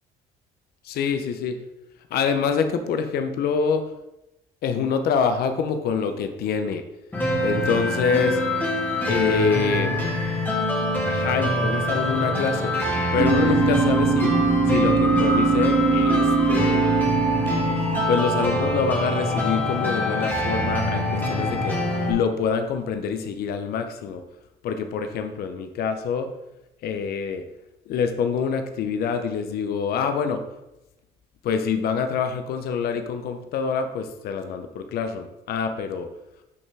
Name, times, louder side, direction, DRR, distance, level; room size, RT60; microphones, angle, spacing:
voice 1, 0.8-1.6 2.1-3.9 4.6-6.8 7.4-8.4 9.0-10.0 11.0-12.7 13.1-14.4 14.7-17.0 18.1-21.8 22.1-24.2 24.6-26.3 26.8-27.4 27.9-30.4 31.4-36.1, left 6 dB, 70° left, 7 dB, 0.7 m, -25 dB
sound 1, 7.1-22.1, left 1 dB, 10° left, 1.6 m, -24 dB
sound 2, 13.2-19.0, right 4 dB, 20° right, 0.7 m, -22 dB
6.5 x 5.6 x 3.5 m, 0.92 s
cardioid pair, 110°, 17 cm